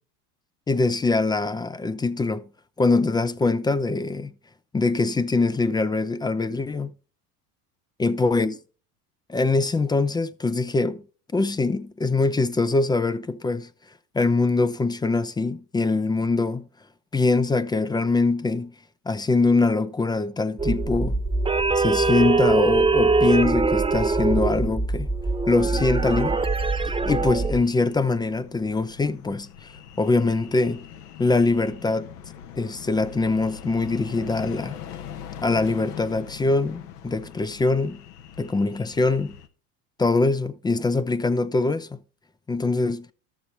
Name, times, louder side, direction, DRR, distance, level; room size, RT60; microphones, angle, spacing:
voice 1, 0.7-2.4 2.8-4.3 4.7-6.9 8.0-8.6 9.3-11.0 11.3-13.7 14.1-16.7 17.1-18.7 19.1-21.2 21.7-25.1 25.5-26.4 27.1-29.7 30.0-30.9 31.2-32.1 32.6-34.8 35.4-38.0 38.4-39.3 40.0-42.0 42.5-43.1, left 3 dB, 10° left, 0.4 m, -23 dB
sound 1, 20.6-27.6, right 3 dB, 10° right, 1.0 m, -22 dB
sound 2, 25.8-39.5, left 9 dB, 75° left, 1.1 m, -42 dB
12.5 x 6.8 x 4.1 m
hypercardioid pair, 90°, 47 cm